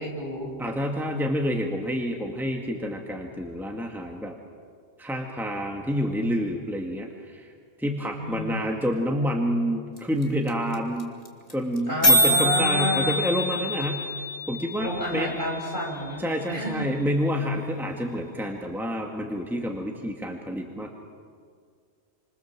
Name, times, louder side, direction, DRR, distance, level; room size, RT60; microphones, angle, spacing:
voice 1, 0.0-0.5 8.2-8.8 11.9-13.1 14.8-16.2 16.5-16.9, equal, 45° right, -1 dB, 7.5 m, -30 dB
voice 2, 0.6-4.4 5.0-7.5 7.8-11.1 11.5-14.1 14.5-15.3 16.2-21.0, equal, ahead, 1 dB, 2.0 m, -28 dB
sound 1, 10.0-10.1 10.2-10.3 10.5-10.7 11.0-11.1 11.3-11.5 11.8-11.9 12.0-16.0, equal, 35° left, 3.0 m, -25 dB
29.0 x 26.5 x 7.6 m, 2.1 s
omnidirectional pair, 1.2 m